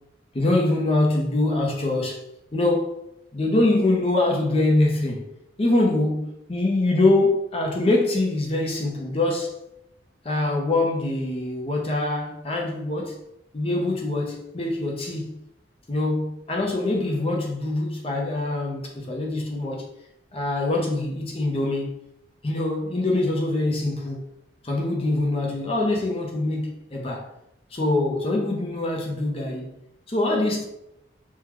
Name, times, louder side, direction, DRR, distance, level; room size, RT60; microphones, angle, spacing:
voice 1, 0.3-2.2 2.5-2.9 3.3-5.2 5.6-9.5 10.2-13.2 13.5-15.4 15.9-19.8 20.3-22.0 22.4-24.2 24.6-27.3 27.7-29.7 30.1-30.6, left 2 dB, 30° left, 0.6 m, -24 dB
3.6 x 2.2 x 3.0 m
head